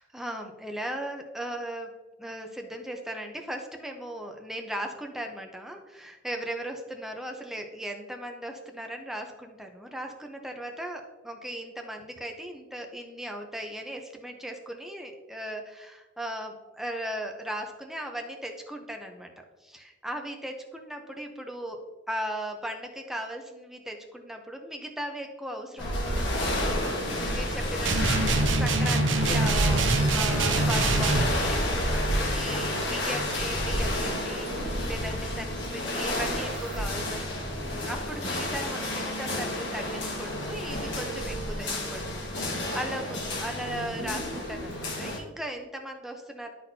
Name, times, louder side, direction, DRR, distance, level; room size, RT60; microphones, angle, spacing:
voice 1, 0.0-1.9 2.2-19.3 19.6-21.8 22.1-29.8 30.1-37.6 37.8-46.5, right 1 dB, ahead, 3 dB, 0.7 m, -37 dB
sound 1, 25.8-45.2, left 1 dB, 70° left, 1.4 m, -30 dB
sound 2, 27.9-31.3, right 3 dB, 80° right, 0.7 m, -25 dB
sound 3, 33.8-34.9 35.2-41.4 41.7-45.3, equal, 50° right, 1.7 m, -43 dB
11.5 x 4.2 x 2.7 m, 1.2 s
head